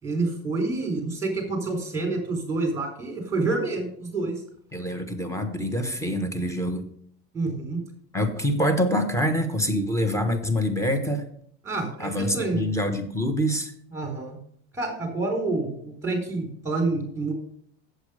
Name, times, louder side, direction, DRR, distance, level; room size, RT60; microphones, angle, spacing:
voice 1, 0.0-4.4 7.3-7.8 11.6-12.7 13.9-14.4 14.7-17.3, right 3 dB, 10° right, 3 dB, 4.0 m, -28 dB
voice 2, 4.7-6.9 8.1-11.3 12.0-13.7, equal, 10° left, 6 dB, 1.4 m, -25 dB
8.0 x 7.9 x 5.1 m, 0.65 s
supercardioid pair, 115°, 33 cm